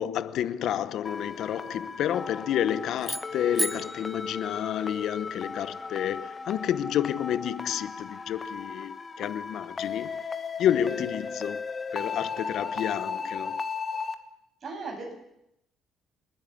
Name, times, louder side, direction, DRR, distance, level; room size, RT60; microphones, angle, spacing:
voice 1, 0.0-10.2 10.6-13.6, left 10 dB, 70° left, 0.9 m, -30 dB
sound 1, 1.0-14.1, left 5 dB, 30° left, 1.7 m, -36 dB
sound 2, 3.0-5.3, right 1 dB, 10° right, 0.8 m, -35 dB
voice 2, 10.7-11.1 14.6-15.2, right 3 dB, 45° right, 7.7 m, -38 dB
30.0 x 10.5 x 9.4 m
cardioid pair, 110°, 0 cm